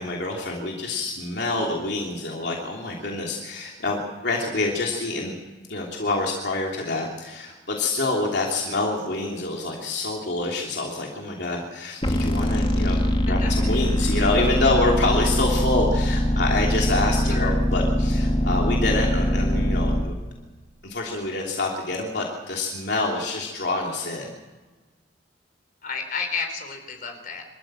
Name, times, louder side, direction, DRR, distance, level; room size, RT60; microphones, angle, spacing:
voice 1, 0.0-5.4 5.7-20.2 20.8-24.3, left 2 dB, 70° left, -1 dB, 3.1 m, -27 dB
sound 1, 12.0-20.0, equal, 30° left, 2.1 m, -22 dB
voice 2, 25.8-27.4, left 5 dB, 50° left, 5 dB, 4.0 m, -31 dB
25.5 x 14.0 x 7.7 m, 1.3 s
head